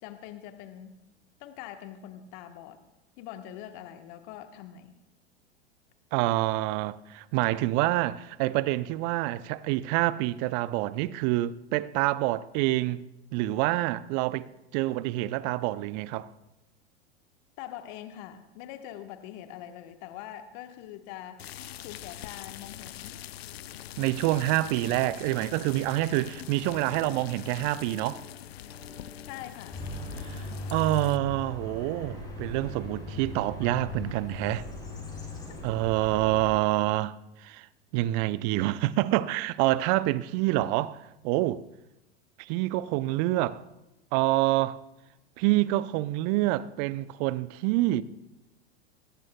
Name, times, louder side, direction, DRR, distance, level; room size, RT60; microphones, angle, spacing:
voice 1, 0.0-1.0 1.4-2.8 3.2-4.9 17.6-21.5 21.8-23.2 29.2-29.8 35.5-35.6 36.1-36.2, left 11 dB, 50° left, 1.3 m, -43 dB
voice 2, 6.1-13.0 13.3-16.3 24.0-28.2 30.2-34.7 35.6-37.7 37.9-41.0 41.2-41.6 42.4-43.6 44.1-44.8 45.4-48.0, right 16 dB, 40° right, 0.5 m, -27 dB
sound 1, 21.4-31.2, left 13 dB, 70° left, 0.6 m, -44 dB
sound 2, 26.2-31.3, left 1 dB, 70° right, 6.0 m, -53 dB
sound 3, 29.7-36.5, left 2 dB, 10° left, 6.1 m, -38 dB
21.5 x 17.0 x 2.3 m
figure-of-eight pair, 90°, 32 cm